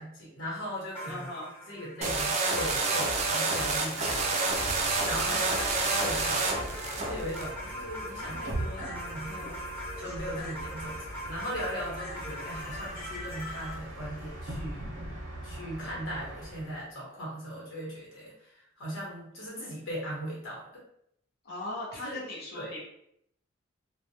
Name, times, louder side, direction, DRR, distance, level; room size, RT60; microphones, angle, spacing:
voice 1, 0.0-1.3 1.7-4.5 5.1-14.9 15.4-20.8 22.0-22.2 22.5-22.8, equal, 75° left, -5 dB, 1.1 m, -39 dB
sound 1, 0.9-13.7, left 1 dB, 10° left, 0.8 m, -42 dB
voice 2, 1.1-1.5 5.2-5.6 21.4-22.8, left 1 dB, 50° left, -4 dB, 0.6 m, -39 dB
sound 2, 2.0-7.5, right 3 dB, 35° right, 0.3 m, -28 dB
Bus, 4.4-16.8, right 1 dB, 85° right, 0.7 m, -41 dB
2.3 x 2.1 x 2.7 m, 0.73 s
head